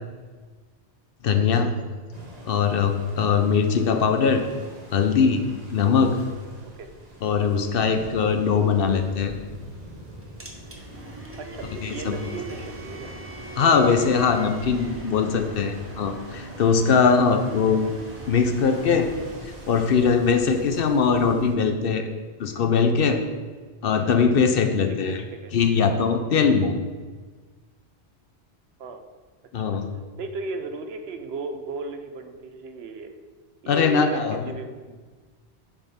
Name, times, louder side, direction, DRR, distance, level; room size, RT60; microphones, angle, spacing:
voice 1, 1.2-1.7 2.5-4.5 4.9-5.4 5.7-6.2 7.2-9.4 11.8-12.2 13.6-18.0 18.3-19.1 19.4-22.1 22.4-23.2 23.8-25.2 25.5-26.7 29.5-29.9 33.7-34.5, left 5 dB, 60° left, 6 dB, 0.8 m, -21 dB
sound 1, 2.1-21.5, right 1 dB, 40° right, 1.2 m, -43 dB
sound 2, 8.9-19.4, right 1 dB, 15° right, 0.7 m, -42 dB
voice 2, 11.4-13.1 25.1-25.5 25.8-25.9 28.8-29.0 29.6-29.8 30.2-33.1 33.6-34.9, right 3 dB, 70° right, 7 dB, 0.9 m, -36 dB
7.2 x 5.4 x 4.2 m, 1.4 s
omnidirectional pair, 1.1 m